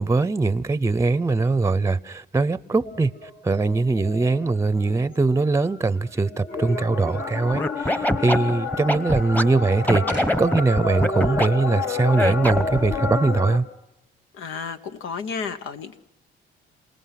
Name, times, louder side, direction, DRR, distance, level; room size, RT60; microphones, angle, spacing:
voice 1, 0.0-13.7, right 3 dB, 15° right, 0.7 m, -22 dB
Temple Mt Fin, 2.8-5.8 6.2-13.6, left 4 dB, 70° left, 2.4 m, -30 dB
Scratching (performance technique), 7.5-9.4 9.9-11.5 12.1-12.8, left 1 dB, 10° left, 1.0 m, -23 dB
voice 2, 14.3-16.0, left 5 dB, 90° left, 1.0 m, -32 dB
27.5 x 19.0 x 5.9 m
cardioid pair, 90°, 20 cm